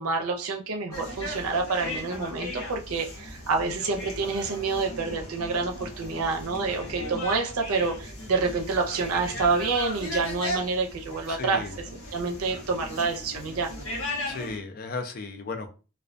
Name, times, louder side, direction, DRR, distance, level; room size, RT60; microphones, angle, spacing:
voice 1, 0.0-13.7, right 4 dB, 85° right, 3 dB, 0.5 m, -28 dB
sound 1, 0.9-14.6, left 1 dB, 75° left, 0.8 m, -37 dB
voice 2, 11.3-11.7 14.3-15.7, left 3 dB, 40° left, 6 dB, 0.4 m, -35 dB
2.2 x 2.2 x 2.5 m, 0.33 s
head